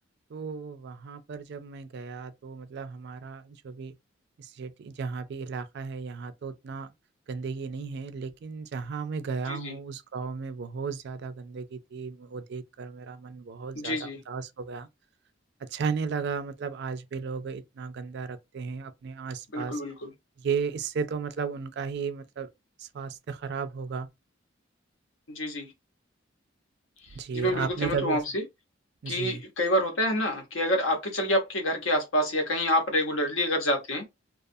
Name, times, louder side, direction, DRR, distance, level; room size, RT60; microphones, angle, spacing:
voice 1, 0.3-4.0 4.4-6.9 7.3-14.9 15.6-19.8 20.4-22.5 22.8-24.1 27.1-28.2 29.0-29.4, right 5 dB, 60° right, 0.4 m, -34 dB
voice 2, 13.7-14.2 19.5-20.1 25.3-25.7 27.3-28.4 29.1-34.0, left 1 dB, 85° left, 1.0 m, -27 dB
2.3 x 2.3 x 2.6 m
head